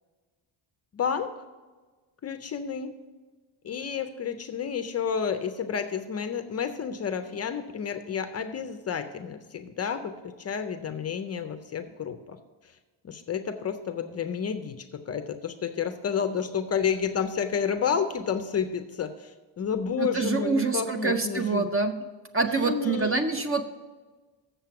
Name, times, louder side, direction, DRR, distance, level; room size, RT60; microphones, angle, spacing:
voice 1, 0.9-1.3 2.2-2.9 3.6-12.4 12.6-12.7 13.0-21.7 22.4-23.2, left 7 dB, 35° left, 9 dB, 0.4 m, -30 dB
voice 2, 20.0-22.0 22.3-23.6, right 4 dB, 30° right, 8 dB, 0.4 m, -26 dB
7.4 x 6.8 x 5.7 m, 1.3 s
cardioid pair, 160°, 48 cm